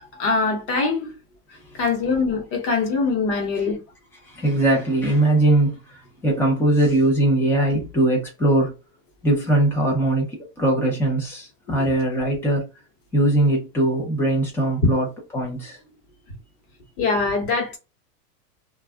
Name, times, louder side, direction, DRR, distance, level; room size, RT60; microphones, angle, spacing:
voice 1, 0.2-1.1 1.8-3.8 17.0-17.8, left 4 dB, 40° left, 1.0 m, -22 dB
voice 2, 4.2-8.7 9.2-12.7 13.1-15.1 15.3-15.8, right 1 dB, 5° left, 0.5 m, -21 dB
2.6 x 2.3 x 2.2 m
supercardioid pair, 150°, 47 cm